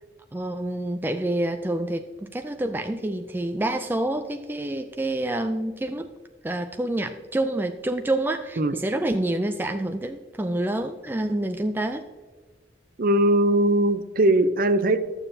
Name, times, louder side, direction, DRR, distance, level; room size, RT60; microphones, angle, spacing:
voice 1, 0.3-6.1 6.4-12.1, right 1 dB, 10° right, 6 dB, 0.3 m, -27 dB
voice 2, 13.0-15.0, right 1 dB, 50° right, 11 dB, 0.6 m, -20 dB
13.5 x 7.1 x 2.7 m, 1.4 s
head